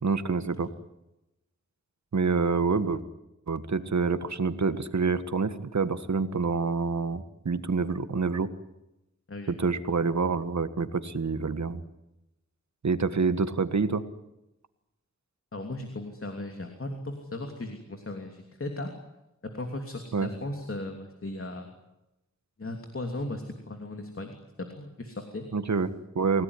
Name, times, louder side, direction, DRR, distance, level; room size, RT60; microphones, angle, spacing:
voice 1, 0.0-0.7 2.1-3.0 3.5-8.5 9.5-11.8 12.8-14.0 20.1-20.3 25.5-26.4, right 4 dB, 70° right, 11 dB, 1.7 m, -27 dB
voice 2, 15.5-18.9 19.5-21.7 22.6-24.4 24.8-25.5, left 2 dB, 50° left, 4 dB, 3.1 m, -37 dB
29.0 x 17.5 x 9.9 m, 0.93 s
wide cardioid pair, 80°, 29 cm